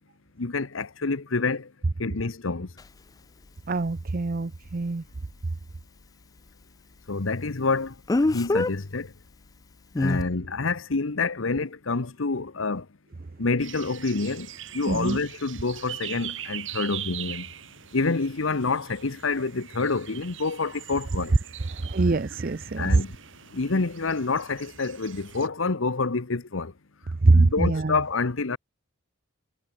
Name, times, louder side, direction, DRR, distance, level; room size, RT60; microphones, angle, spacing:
voice 1, 0.4-1.7 2.0-2.7 7.1-9.1 10.0-12.9 13.4-17.5 17.9-21.3 22.8-23.2 23.5-26.7 27.3-28.6, left 3 dB, 75° left, 1.0 m, -27 dB
Speech, 2.8-2.9 8.1-8.7 9.9-10.2, left 2 dB, 20° left, 0.4 m, -23 dB
voice 2, 3.7-5.0 14.9-15.2 21.7-23.0 27.2-28.0, right 3 dB, 45° right, 0.6 m, -23 dB
sound 1, 13.6-25.5, right 11 dB, 70° right, 3.9 m, -41 dB
head